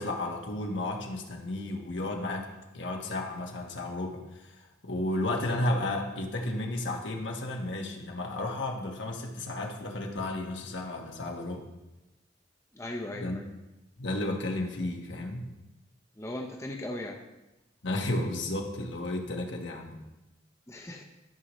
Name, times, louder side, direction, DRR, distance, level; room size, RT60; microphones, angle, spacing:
voice 1, 0.0-2.5 2.7-11.7 13.2-13.4 14.0-15.5 17.8-20.0, left 1 dB, 75° left, 1 dB, 1.4 m, -33 dB
voice 2, 12.7-13.4 16.2-17.2 20.7-21.0, left 1 dB, 15° left, 1 dB, 0.8 m, -38 dB
13.5 x 6.5 x 3.1 m, 1.0 s
head